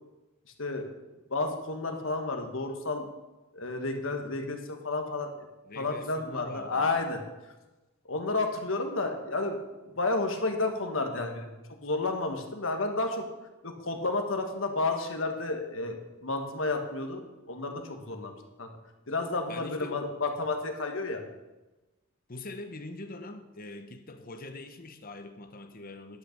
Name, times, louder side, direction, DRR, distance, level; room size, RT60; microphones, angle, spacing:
voice 1, 1.3-3.1 3.5-5.3 5.8-7.2 8.1-11.5 11.8-13.2 13.6-18.7 19.1-21.2, left 3 dB, 70° left, 4 dB, 1.5 m, -31 dB
voice 2, 5.7-7.0 19.5-20.0 22.3-26.2, left 2 dB, 45° left, 8 dB, 0.9 m, -43 dB
11.0 x 6.7 x 6.6 m, 1.1 s
head